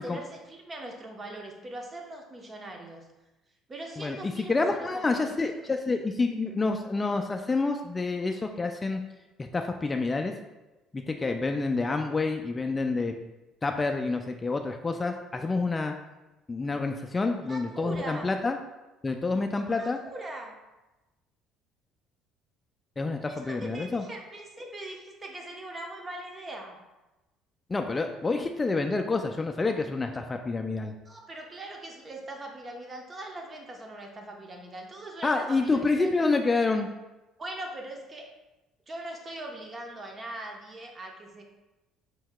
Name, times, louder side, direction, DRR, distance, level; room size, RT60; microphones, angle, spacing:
voice 1, 0.0-3.1 3.7-5.3 17.4-18.3 19.6-20.5 23.3-26.8 31.1-36.1 37.4-38.3 38.9-41.4, right 1 dB, 30° right, 2 dB, 0.8 m, -41 dB
voice 2, 4.0-9.0 9.4-10.3 10.9-13.1 13.6-15.9 16.5-18.6 19.0-20.0 23.0-24.0 27.7-30.9 35.2-36.9, left 3 dB, 20° left, 4 dB, 0.3 m, -28 dB
4.5 x 4.5 x 2.2 m, 1.1 s
supercardioid pair, 85°, 0 cm